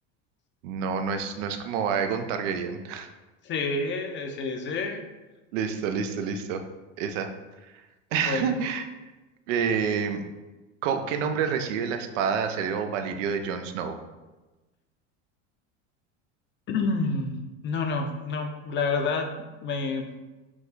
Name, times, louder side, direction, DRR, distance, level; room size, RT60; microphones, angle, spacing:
voice 1, 0.6-3.1 5.5-6.6 7.0-7.3 7.6-7.7 8.1-8.9 9.5-10.2 10.8-14.0, right 6 dB, 80° right, 7 dB, 0.6 m, -28 dB
voice 2, 3.4-5.0 8.1-8.6 16.7-19.3 19.6-20.1, left 4 dB, 30° left, 4 dB, 0.6 m, -29 dB
4.7 x 2.3 x 3.9 m, 1.1 s
supercardioid pair, 110°, 36 cm